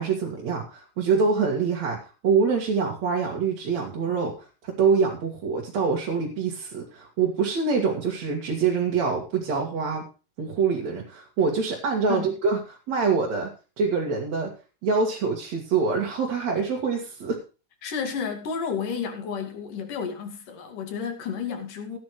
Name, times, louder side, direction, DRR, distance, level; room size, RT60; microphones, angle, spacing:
voice 1, 0.0-2.0 2.2-10.1 10.4-13.5 13.8-14.5 14.8-17.4, right 5 dB, 60° right, 3.3 m, -25 dB
voice 2, 17.8-22.0, left 6 dB, 75° left, 3.9 m, -31 dB
16.0 x 10.0 x 3.2 m
omnidirectional pair, 3.7 m